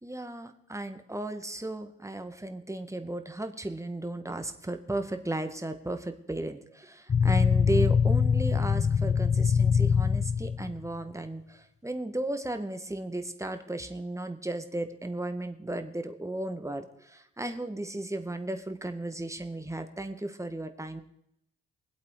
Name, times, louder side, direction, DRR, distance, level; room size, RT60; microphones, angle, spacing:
voice 1, 0.0-21.0, right 1 dB, 10° right, 7 dB, 1.8 m, -35 dB
sound 1, 7.1-10.8, left 6 dB, 20° left, 0.5 m, -23 dB
22.5 x 8.2 x 5.0 m, 0.76 s
figure-of-eight pair, 45°, 38 cm